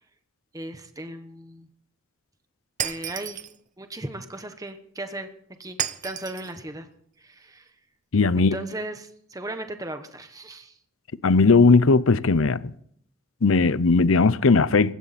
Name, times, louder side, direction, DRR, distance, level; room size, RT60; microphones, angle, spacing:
voice 1, 0.5-1.7 2.8-3.4 3.8-5.3 5.6-5.8 6.0-6.9 7.2-7.7 8.4-10.7, right 1 dB, 15° right, 1.1 m, -36 dB
Shatter, 2.8-3.6 5.8-6.5, right 10 dB, 35° right, 0.7 m, -31 dB
voice 2, 8.1-8.6 11.2-12.6 13.4-14.9, left 4 dB, 75° left, 0.7 m, -18 dB
20.5 x 16.5 x 4.2 m
head